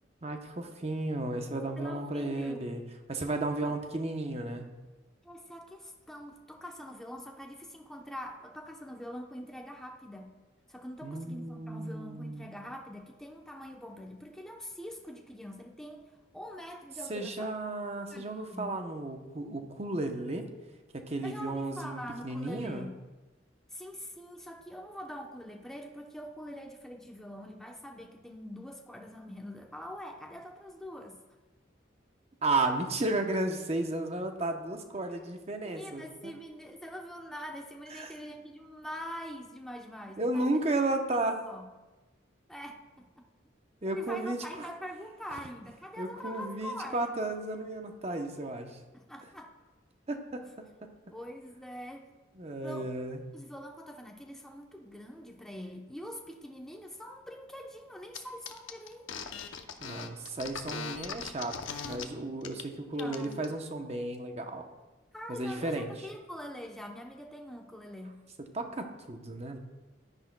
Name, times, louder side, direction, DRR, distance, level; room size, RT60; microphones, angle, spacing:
voice 1, 0.2-2.8 3.1-4.7 11.0-12.5 17.1-20.4 20.9-22.9 32.4-36.3 37.9-38.1 40.2-41.4 43.8-44.7 45.3-45.4 46.0-48.8 50.1-50.4 50.8-50.9 52.3-53.2 59.8-61.6 61.8-64.6 65.3-66.1 68.5-69.6, right 2 dB, 30° right, 5 dB, 0.8 m, -33 dB
voice 2, 1.8-2.7 3.6-3.8 5.2-10.3 10.7-17.5 18.1-18.7 21.2-23.0 23.7-31.2 35.6-40.6 41.1-41.2 41.5-41.7 42.5-43.3 43.9-47.1 48.9-49.5 51.1-52.1 52.6-52.9 53.3-59.4 63.0-63.5 65.1-68.2, equal, 5° left, 1 dB, 0.7 m, -44 dB
sound 1, 58.1-58.2 58.5-62.0 62.4-62.6 63.0-63.5, left 6 dB, 85° left, 0.7 m, -39 dB
10.5 x 10.0 x 2.2 m, 1.1 s
head